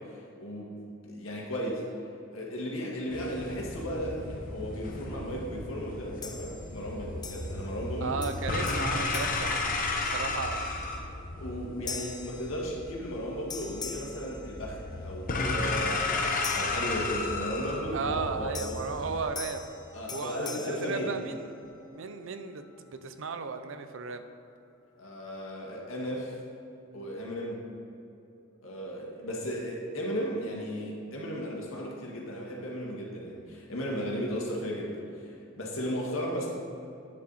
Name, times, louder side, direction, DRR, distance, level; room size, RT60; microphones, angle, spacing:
voice 1, 0.0-1.8 2.3-8.2 10.1-10.3 11.4-18.8 19.9-21.2 25.0-26.4 26.9-27.6 28.6-36.5, equal, 80° left, -2 dB, 1.8 m, -35 dB
sound 1, 3.1-19.3, left 3 dB, 45° left, 0.9 m, -34 dB
sound 2, 6.2-6.9 7.2-7.9 8.2-10.4 10.9-11.2 11.9-13.2 13.5-15.1 16.4-17.6 18.5-21.8, left 5 dB, 20° left, 0.5 m, -44 dB
voice 2, 8.0-10.7 17.9-19.7 20.1-21.5 21.9-24.2, right 5 dB, 70° right, 9 dB, 0.6 m, -35 dB
9.6 x 7.0 x 4.1 m, 2.8 s
head